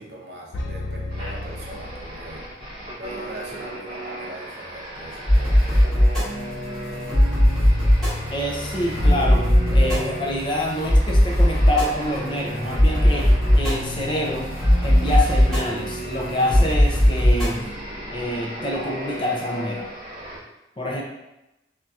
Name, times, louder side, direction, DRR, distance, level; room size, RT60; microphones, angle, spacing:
voice 1, 0.0-2.5 3.0-5.7, right 1 dB, 65° right, -2 dB, 0.7 m, -40 dB
sound 1, 0.5-2.6, left 2 dB, 90° left, 0.4 m, -33 dB
sound 2, 1.1-20.4, right 1 dB, 25° right, 1.2 m, -36 dB
sound 3, 5.3-17.6, equal, 5° left, 1.2 m, -19 dB
voice 2, 8.3-14.5 14.8-17.6 18.1-19.9 20.8-21.0, left 1 dB, 25° left, -1 dB, 0.4 m, -27 dB
3.4 x 2.7 x 2.3 m, 0.93 s
head